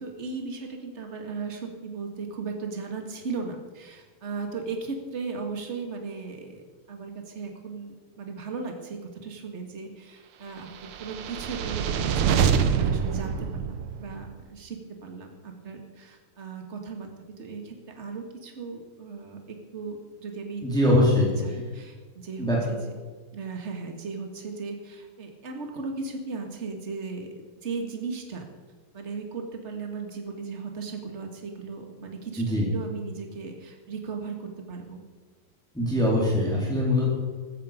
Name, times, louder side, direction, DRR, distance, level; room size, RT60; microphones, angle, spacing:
voice 1, 0.0-10.7 11.0-17.1 17.4-20.6 21.0-21.1 21.4-22.9 23.3-28.5 28.9-35.0, right 4 dB, 35° right, 4 dB, 2.1 m, -37 dB
sound 1, 10.8-14.3, right 7 dB, 85° right, 1.9 m, -25 dB
voice 2, 20.6-21.3 22.4-22.6 32.4-32.7 35.7-37.1, left 1 dB, ahead, -5 dB, 3.6 m, -22 dB
15.0 x 13.5 x 5.2 m, 1.5 s
omnidirectional pair, 2.4 m